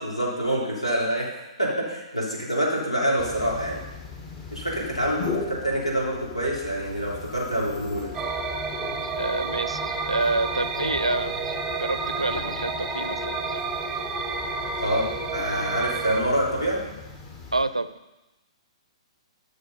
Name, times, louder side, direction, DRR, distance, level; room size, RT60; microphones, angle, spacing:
voice 1, 0.0-3.8 4.5-8.1 14.8-16.8, right 1 dB, 85° left, -4 dB, 3.4 m, -26 dB
sound 1, 3.2-17.6, left 5 dB, 25° left, 1.4 m, -38 dB
sound 2, 8.1-16.2, right 5 dB, 10° right, 0.8 m, -31 dB
voice 2, 9.0-13.6 17.5-17.9, right 2 dB, 80° right, 14 dB, 0.5 m, -28 dB
11.5 x 6.7 x 5.5 m, 1.0 s
figure-of-eight pair, 120°, 3 cm